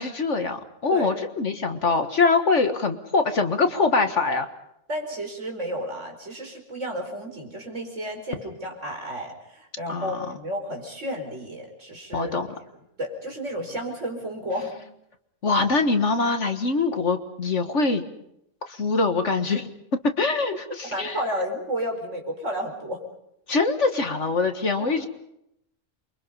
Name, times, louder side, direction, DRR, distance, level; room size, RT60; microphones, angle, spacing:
voice 1, 0.0-4.5 9.9-10.2 12.1-12.5 15.4-18.0 18.7-19.7 20.2-21.2 23.5-25.1, left 3 dB, 55° left, 7 dB, 1.8 m, -23 dB
voice 2, 4.9-12.4 13.0-14.8 20.9-23.0 24.8-25.1, equal, 55° right, 2 dB, 5.3 m, -32 dB
28.0 x 24.0 x 5.5 m, 0.79 s
omnidirectional pair, 1.5 m